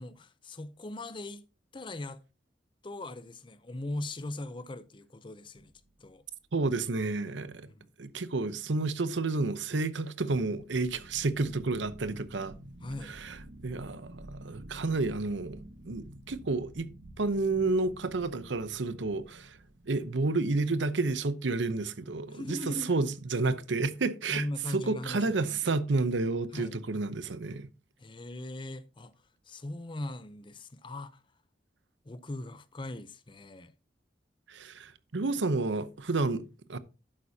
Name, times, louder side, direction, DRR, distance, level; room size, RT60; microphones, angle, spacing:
voice 1, 0.0-1.5 1.7-2.2 2.8-5.7 6.0-6.2 7.6-7.9 12.8-13.2 22.3-22.9 24.3-25.6 26.5-26.8 28.0-29.1 29.5-31.2 32.0-33.7, left 1 dB, 25° left, 0.6 m, -40 dB
sound 1, 5.6-6.1 10.5-20.7, right 1 dB, 60° right, 1.0 m, -50 dB
voice 2, 6.5-7.7 8.0-12.5 13.1-13.4 13.6-15.6 15.9-16.9 17.2-19.6 19.9-27.7 34.5-36.8, right 3 dB, 85° right, 0.8 m, -30 dB
11.5 x 8.6 x 2.8 m
head